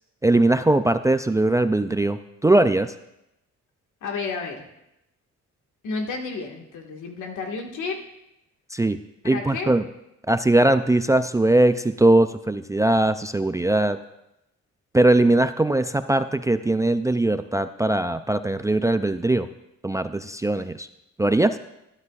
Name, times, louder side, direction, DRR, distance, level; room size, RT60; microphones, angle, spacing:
voice 1, 0.2-2.9 8.7-9.0 9.2-9.8 10.3-14.0 14.9-19.5 19.8-20.9 21.2-21.6, right 2 dB, 10° right, 10 dB, 0.3 m, -20 dB
voice 2, 4.0-4.7 5.8-8.0 9.3-9.7, left 4 dB, 80° left, 2 dB, 1.8 m, -31 dB
13.0 x 12.0 x 2.4 m, 0.86 s
cardioid pair, 90°, 30 cm